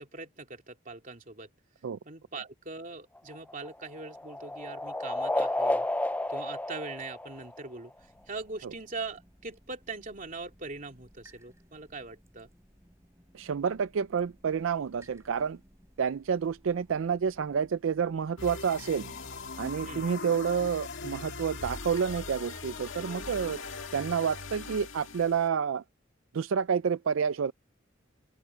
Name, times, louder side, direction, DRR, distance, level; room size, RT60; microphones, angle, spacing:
voice 1, 0.0-1.5 2.0-5.9 6.3-7.9 8.3-12.5 19.9-20.1, right 3 dB, 45° right, 3.0 m, -41 dB
sound 1, 3.2-7.9, left 1 dB, 10° left, 0.6 m, -32 dB
sound 2, 8.0-20.1, equal, 15° right, 3.9 m, -60 dB
voice 2, 13.3-15.6 16.0-19.1 19.6-23.6 23.9-25.8 26.3-27.5, right 6 dB, 85° right, 0.4 m, -29 dB
sound 3, 18.4-25.5, left 4 dB, 80° left, 1.9 m, -40 dB
open air
head